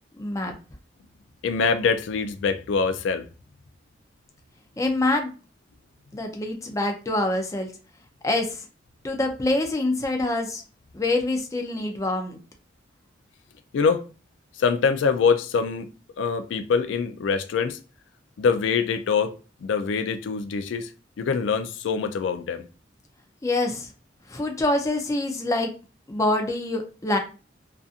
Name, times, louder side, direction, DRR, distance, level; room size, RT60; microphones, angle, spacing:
voice 1, 0.2-0.5 4.8-5.3 6.1-7.7 8.2-8.6 9.0-10.6 10.9-12.4 23.4-23.9 24.3-25.7 26.1-27.2, left 2 dB, 15° left, 0.4 m, -25 dB
voice 2, 1.4-3.2 11.7-11.9 13.7-14.0 14.6-15.9 16.2-17.8 18.4-19.3 19.6-20.9 21.2-22.6, left 5 dB, 85° left, 0.3 m, -24 dB
2.6 x 2.4 x 2.4 m
head